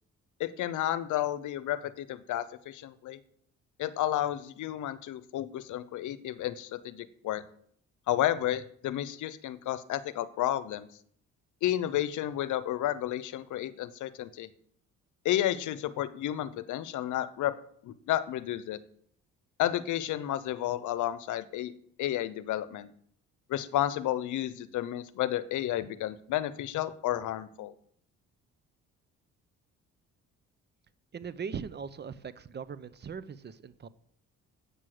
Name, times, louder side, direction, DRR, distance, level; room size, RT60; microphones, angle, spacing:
voice 1, 0.4-3.2 3.8-7.4 8.1-10.9 11.6-14.5 15.2-17.6 17.8-18.8 19.6-21.7 22.0-22.9 23.5-27.7, left 13 dB, 80° left, 0.8 m, -31 dB
voice 2, 31.1-33.9, right 6 dB, 35° right, 0.7 m, -40 dB
8.3 x 6.3 x 7.8 m
cardioid pair, 90°, 30 cm